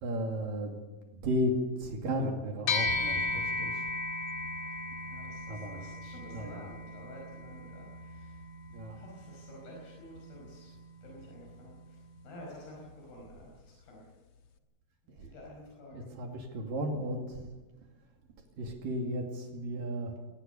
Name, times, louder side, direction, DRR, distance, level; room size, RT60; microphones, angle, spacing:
voice 1, 0.0-0.8 1.1-3.9 5.5-5.8 6.3-6.7 8.7-9.0 15.1-15.3 15.9-17.5 18.4-20.2, equal, 65° right, 2 dB, 4.0 m, -34 dB
sound 1, 2.7-12.3, left 3 dB, 55° left, 1.5 m, -37 dB
voice 2, 5.0-8.4 8.9-10.7 11.0-14.1 15.2-16.2, left 1 dB, 80° left, -2 dB, 7.0 m, -50 dB
22.5 x 18.5 x 7.0 m, 1.2 s
omnidirectional pair, 4.4 m